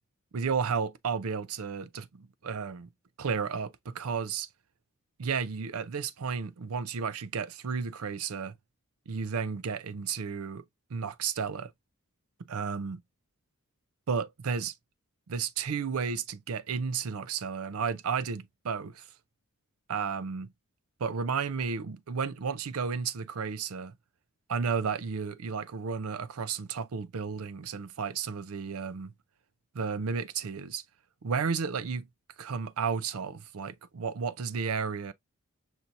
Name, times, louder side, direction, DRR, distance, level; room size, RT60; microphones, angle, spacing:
voice 1, 0.3-2.9 3.2-4.5 5.2-8.5 9.1-10.6 10.9-11.7 12.4-13.0 14.1-14.7 15.3-19.1 19.9-20.5 21.0-23.9 24.5-29.1 29.7-30.8 31.2-32.1 32.4-35.1, right 6 dB, 75° right, 0.5 m, -33 dB
5.8 x 2.7 x 2.5 m
head